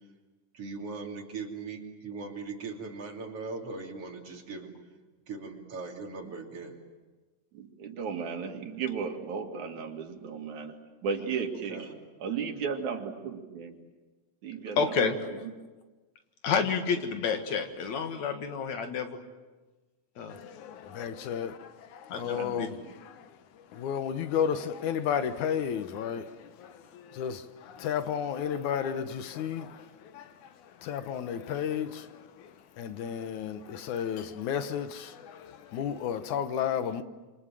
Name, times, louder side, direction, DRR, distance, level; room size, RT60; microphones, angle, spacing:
voice 1, 0.5-4.7 5.3-6.8 11.7-12.0, right 4 dB, 55° right, 3.8 m, -39 dB
voice 2, 7.5-11.8 12.2-13.8 14.4-15.5 22.2-22.9, right 6 dB, 80° right, 3.6 m, -35 dB
voice 3, 14.8-15.3 16.4-19.2 20.2-20.4 22.1-22.7, left 6 dB, 70° left, 3.0 m, -29 dB
voice 4, 20.3-37.0, left 8 dB, 90° left, 2.6 m, -33 dB
27.5 x 26.5 x 7.6 m
omnidirectional pair, 3.3 m